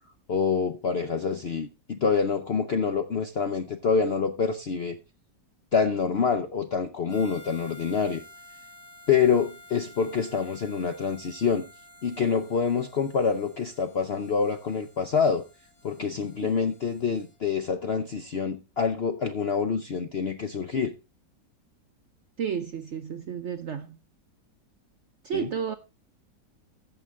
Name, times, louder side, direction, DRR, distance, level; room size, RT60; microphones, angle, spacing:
voice 1, 0.3-5.0 5.7-8.2 9.1-11.6 12.0-15.4 15.8-20.9 25.3-25.5, left 5 dB, 60° left, 0.6 m, -26 dB
Harmonica, 7.1-17.4, left 2 dB, 15° left, 7.7 m, -52 dB
voice 2, 22.4-24.0 25.2-25.7, right 7 dB, 65° right, 0.7 m, -32 dB
14.5 x 6.0 x 3.6 m
omnidirectional pair, 1.9 m